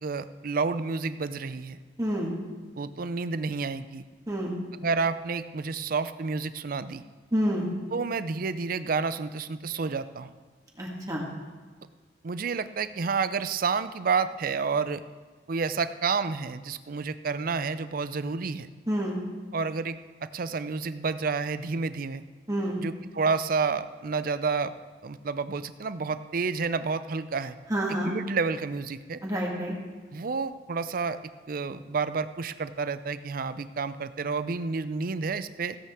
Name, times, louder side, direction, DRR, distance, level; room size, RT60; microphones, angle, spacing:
voice 1, 0.0-1.8 2.8-4.0 4.8-7.0 7.9-10.3 12.2-15.0 15.5-18.7 19.5-22.2 22.8-24.7 25.0-27.6 28.0-29.2 30.1-31.2 31.5-35.8, right 4 dB, 50° right, 13 dB, 0.5 m, -30 dB
voice 2, 2.0-2.3 4.3-4.5 7.3-7.7 10.8-11.2 18.9-19.2 22.5-22.8 27.7-28.1 29.2-29.7, equal, 20° right, -3 dB, 1.7 m, -28 dB
16.5 x 8.3 x 3.6 m, 1.4 s
head